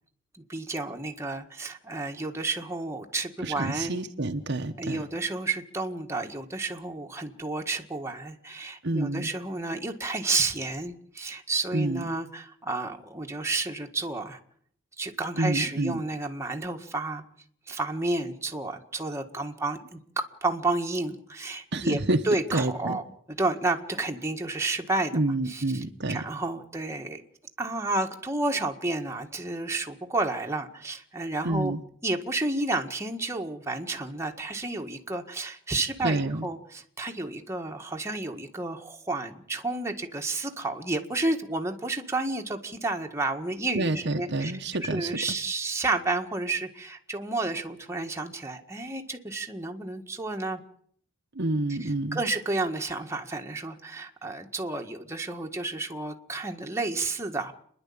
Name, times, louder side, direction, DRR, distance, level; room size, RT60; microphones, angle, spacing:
voice 1, 0.3-3.9 4.8-14.4 15.0-17.2 17.7-23.0 23.4-27.2 27.6-31.7 32.0-44.5 44.8-50.6 51.8-57.5, right 2 dB, 15° right, 3 dB, 1.7 m, -31 dB
voice 2, 3.4-5.0 8.8-9.3 11.7-12.1 15.4-16.0 21.7-22.2 22.5-23.0 25.1-26.2 31.4-31.8 36.0-36.5 43.7-45.4 51.3-52.2, right 2 dB, 55° right, 6 dB, 1.1 m, -28 dB
29.5 x 11.0 x 8.7 m, 0.63 s
head